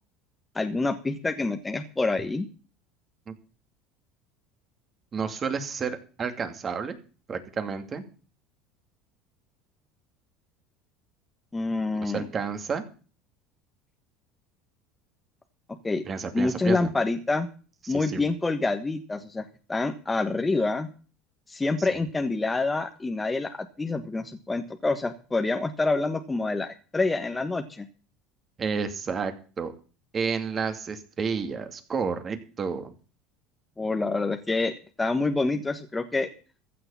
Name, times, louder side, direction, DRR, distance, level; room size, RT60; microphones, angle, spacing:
voice 1, 0.5-2.4 11.5-12.3 15.8-16.0 16.3-17.5 17.9-19.4 19.7-20.9 21.5-27.9 33.8-36.3, left 3 dB, 15° left, 5 dB, 1.4 m, -27 dB
voice 2, 5.1-7.0 7.3-8.0 12.0-12.9 16.0-16.9 17.8-18.3 21.8-21.9 28.6-29.7 30.1-32.9, right 5 dB, 30° right, 8 dB, 2.5 m, -31 dB
15.0 x 6.8 x 8.5 m, 0.38 s
supercardioid pair, 110°, 0 cm